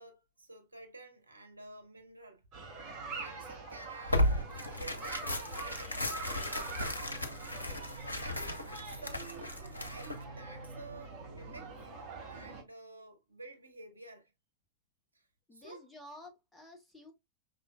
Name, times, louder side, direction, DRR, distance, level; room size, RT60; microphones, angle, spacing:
voice 1, 0.0-2.5 3.2-6.8 8.2-8.6 8.8-11.8 12.3-14.3 15.1-15.9, right 2 dB, 80° right, 1.0 m, -52 dB
sound 1, 2.5-12.6, right 4 dB, 30° right, 2.4 m, -45 dB
Tearing, 4.1-10.2, left 1 dB, 80° left, 0.8 m, -35 dB
voice 2, 15.5-17.1, left 1 dB, 5° left, 1.4 m, -51 dB
5.5 x 3.8 x 2.2 m
figure-of-eight pair, 90°, 0 cm